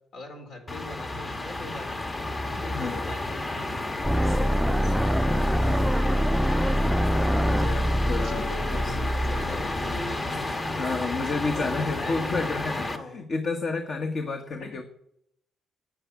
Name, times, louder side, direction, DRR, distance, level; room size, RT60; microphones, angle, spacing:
voice 1, 0.1-2.0 2.5-3.9 5.9-6.0 8.2-13.2 14.6-14.8, left 2 dB, 75° left, 3 dB, 3.9 m, -42 dB
sound 1, 0.7-13.0, left 2 dB, 30° left, 1.5 m, -31 dB
sound 2, 4.0-10.0, equal, ahead, 0.4 m, -25 dB
voice 2, 4.2-5.1 7.3-9.0 10.5-14.8, left 3 dB, 50° left, 5 dB, 1.4 m, -31 dB
9.9 x 9.6 x 8.3 m, 0.75 s
cardioid pair, 90°, 0 cm